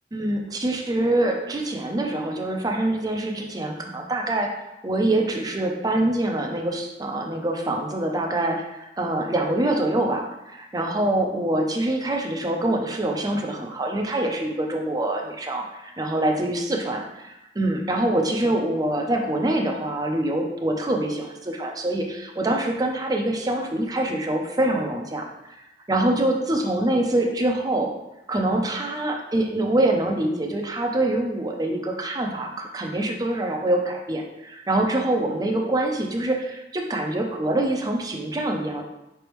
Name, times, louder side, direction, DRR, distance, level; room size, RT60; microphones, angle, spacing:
voice 1, 0.1-4.5 4.8-25.2 25.9-27.9 28.3-38.8, right 1 dB, 20° right, 1 dB, 0.5 m, -25 dB
5.2 x 3.4 x 3.0 m, 0.94 s
head